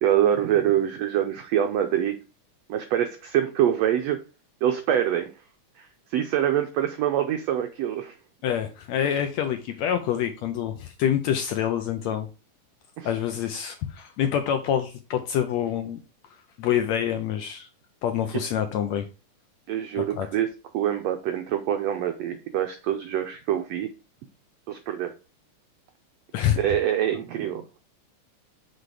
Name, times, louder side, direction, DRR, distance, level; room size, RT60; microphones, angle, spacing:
voice 1, 0.0-2.2 2.7-4.2 4.6-5.4 5.8-8.2 13.0-13.1 18.3-18.4 19.7-23.9 24.7-25.1 26.6-27.8, right 10 dB, 85° right, 6 dB, 1.5 m, -25 dB
voice 2, 8.4-12.3 13.0-16.0 16.6-17.7 18.0-19.1 20.0-20.3 26.3-26.6, left 9 dB, 80° left, 7 dB, 1.6 m, -26 dB
6.6 x 4.1 x 4.8 m, 0.31 s
omnidirectional pair, 3.8 m